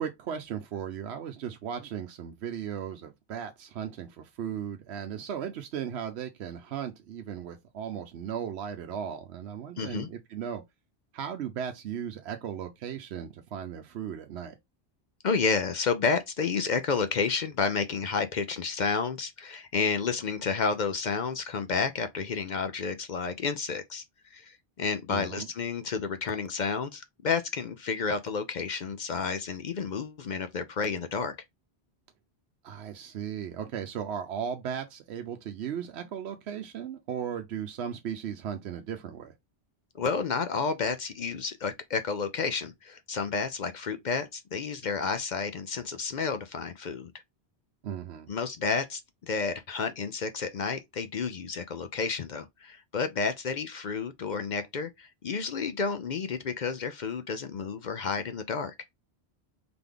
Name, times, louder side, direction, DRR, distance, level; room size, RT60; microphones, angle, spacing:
voice 1, 0.0-10.6 11.1-14.6 25.1-25.5 32.6-39.3 47.8-48.3, right 8 dB, 85° right, 0.9 m, -36 dB
voice 2, 9.8-10.1 15.2-24.0 24.3-31.3 39.9-47.1 48.3-58.7, left 5 dB, 55° left, 0.6 m, -31 dB
3.9 x 3.4 x 3.7 m
omnidirectional pair, 1.1 m